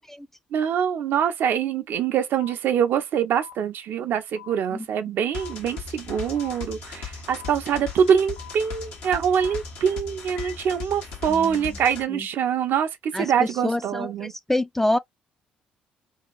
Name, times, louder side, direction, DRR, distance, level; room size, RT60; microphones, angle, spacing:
voice 1, 0.5-14.3, right 8 dB, 60° right, 0.5 m, -24 dB
sound 1, 2.4-2.5 3.4-3.5 4.4-4.5 5.4-5.5 6.4-6.5 7.4-7.5 8.4-8.5 9.4-9.5 10.4-10.5, left 11 dB, 40° left, 1.0 m, -43 dB
sound 2, 5.3-12.0, left 5 dB, 70° left, 0.9 m, -38 dB
voice 2, 11.3-11.6 12.1-12.2 13.1-15.0, left 1 dB, 10° left, 0.3 m, -27 dB
2.7 x 2.4 x 2.3 m
hypercardioid pair, 50°, 4 cm